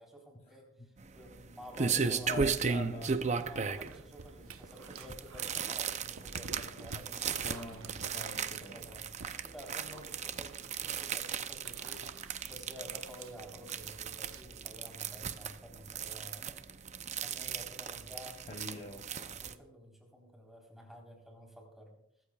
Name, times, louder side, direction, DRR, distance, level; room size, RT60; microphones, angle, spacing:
voice 1, 0.0-2.3 3.4-7.6 8.1-16.6 17.2-18.4 18.7-22.3, equal, ahead, -1 dB, 3.9 m, -51 dB
sound 1, 1.0-19.5, right 6 dB, 35° right, 0.6 m, -36 dB
voice 2, 1.9-3.2 7.4-8.9 18.5-19.0, left 2 dB, 30° left, 2 dB, 0.9 m, -44 dB
Dog, 3.9-14.4, right 3 dB, 80° right, 0.9 m, -51 dB
23.5 x 14.0 x 2.4 m, 0.79 s
head